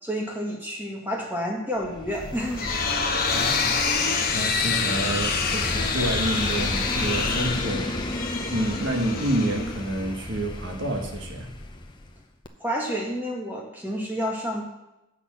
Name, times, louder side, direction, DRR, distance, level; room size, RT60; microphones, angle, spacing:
voice 1, 0.0-3.5 12.6-14.6, equal, 10° right, -2 dB, 1.8 m, -30 dB
sound 1, 1.8-12.2 12.4-12.5, left 2 dB, 20° left, 0.7 m, -33 dB
sound 2, 2.2-10.1, left 5 dB, 40° left, 1.0 m, -27 dB
voice 2, 3.3-3.9 4.3-8.0 8.5-11.6, right 1 dB, 60° right, 2 dB, 1.4 m, -28 dB
8.4 x 6.1 x 7.3 m, 0.93 s
head